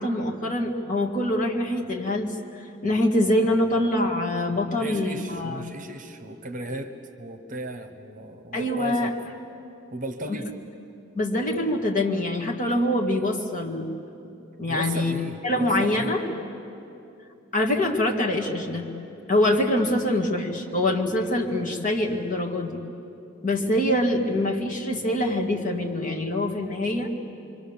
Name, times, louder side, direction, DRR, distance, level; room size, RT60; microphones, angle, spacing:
voice 1, 0.0-2.3 2.8-5.7 8.5-9.1 10.3-10.4 11.1-13.9 14.6-15.1 15.4-16.3 17.5-18.9 19.3-22.8 23.4-27.1, left 1 dB, 40° left, -1 dB, 2.2 m, -24 dB
voice 2, 4.8-9.1 9.9-10.5 14.7-16.2, right 2 dB, 40° right, 7 dB, 1.2 m, -36 dB
25.5 x 25.0 x 7.2 m, 2.7 s
head